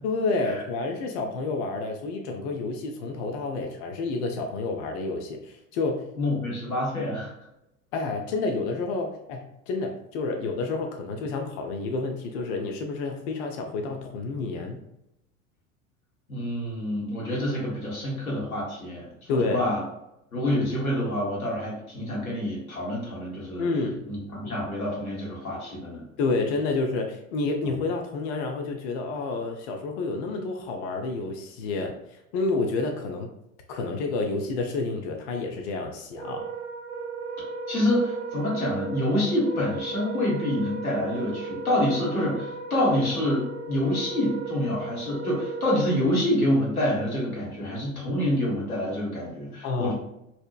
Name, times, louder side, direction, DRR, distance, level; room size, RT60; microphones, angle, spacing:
voice 1, 0.0-6.1 7.9-14.8 19.3-19.7 23.6-24.1 26.2-33.3 33.7-36.5 49.6-49.9, left 3 dB, 50° left, 3 dB, 0.4 m, -29 dB
voice 2, 6.2-7.3 16.3-19.8 20.3-23.6 24.1-26.0 37.7-49.9, left 1 dB, 85° left, -4 dB, 0.9 m, -27 dB
Wind instrument woodwind instrument, 36.1-46.2, right 3 dB, 55° right, 0.8 m, -36 dB
2.7 x 2.0 x 2.3 m, 0.84 s
figure-of-eight pair, 75°, 42 cm